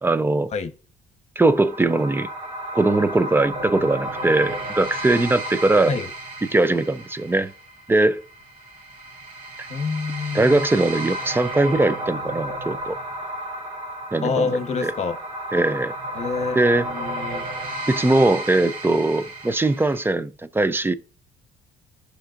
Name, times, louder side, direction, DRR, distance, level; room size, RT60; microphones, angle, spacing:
voice 1, 0.0-0.5 1.4-2.3 2.7-6.0 6.4-7.5 7.9-8.2 10.3-13.0 14.1-14.5 14.8-14.9 15.5-15.9 16.5-16.9 17.9-20.9, right 2 dB, 15° right, 0.5 m, -20 dB
sound 1, 1.5-20.1, right 1 dB, 50° right, 3.0 m, -33 dB
voice 2, 9.7-10.6 14.2-15.2 16.1-17.4, left 4 dB, 40° left, 1.1 m, -27 dB
15.0 x 5.7 x 2.5 m
cardioid pair, 110°, 17 cm